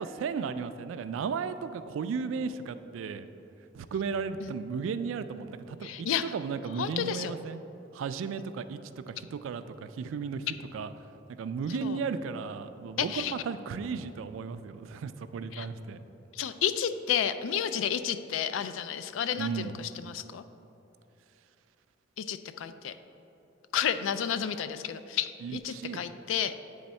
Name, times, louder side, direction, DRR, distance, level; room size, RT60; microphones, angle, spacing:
voice 1, 0.0-3.3 3.7-7.6 7.9-10.9 11.4-16.0 19.4-19.8 25.4-26.1, right 5 dB, 85° right, 12 dB, 0.3 m, -35 dB
voice 2, 5.8-6.2 6.8-7.3 11.8-12.0 13.0-13.3 15.5-15.7 16.3-19.7 20.0-20.4 22.2-22.9 23.7-26.5, left 8 dB, 85° left, 12 dB, 0.3 m, -31 dB
8.6 x 3.5 x 4.2 m, 2.9 s
head